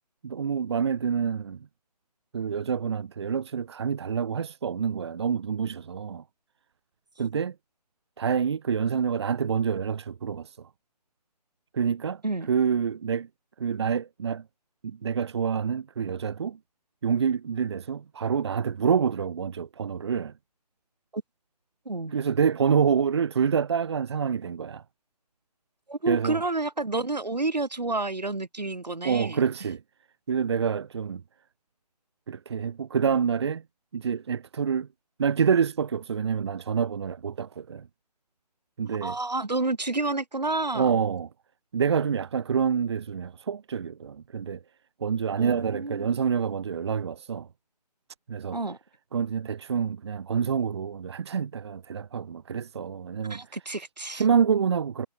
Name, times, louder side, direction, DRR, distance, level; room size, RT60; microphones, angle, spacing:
voice 1, 0.2-1.6 2.3-6.2 7.2-7.5 8.2-10.5 11.7-12.2 12.5-13.3 13.6-14.4 15.0-16.6 17.0-20.3 22.1-24.8 26.1-26.4 29.0-29.8 30.3-31.2 32.3-33.6 33.9-34.9 35.2-37.9 38.8-39.2 40.7-41.3 41.7-44.6 45.0-47.5 48.3-48.6 49.1-53.4 54.1-55.1, right 7 dB, 40° right, 1.3 m, -27 dB
voice 2, 25.9-29.4 39.0-41.0 45.4-46.1 48.5-48.8 53.2-54.2, right 2 dB, 75° right, 2.5 m, -30 dB
figure-of-eight pair, 150°, 21 cm